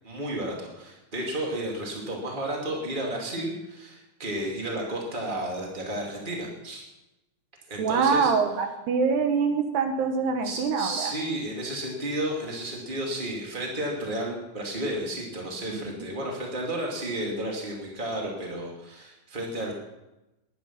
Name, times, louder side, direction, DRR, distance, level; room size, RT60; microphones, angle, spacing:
voice 1, 0.0-6.8 7.7-8.3 10.4-19.7, right 1 dB, 30° right, -1 dB, 0.8 m, -32 dB
voice 2, 7.8-11.1 15.7-15.8, right 5 dB, 70° right, 5 dB, 2.9 m, -24 dB
21.5 x 10.5 x 5.9 m, 0.99 s
omnidirectional pair, 5.5 m